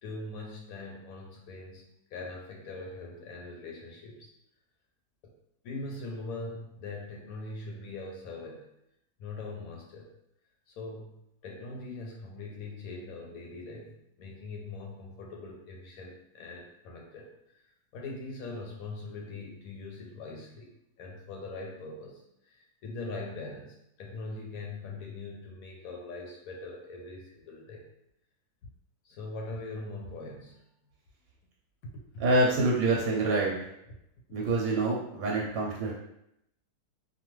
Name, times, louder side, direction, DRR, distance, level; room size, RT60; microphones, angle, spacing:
voice 1, 0.0-1.9 2.1-4.3 5.2-5.3 5.6-8.7 9.2-10.1 10.7-17.6 17.9-27.9 28.6-28.7 29.0-30.6 31.8-32.2 34.4-34.5, left 2 dB, 70° left, 0 dB, 1.0 m, -42 dB
voice 2, 32.2-33.5 34.3-35.9, right 2 dB, 70° right, -3 dB, 1.0 m, -26 dB
2.7 x 2.3 x 3.0 m, 0.79 s
omnidirectional pair, 1.6 m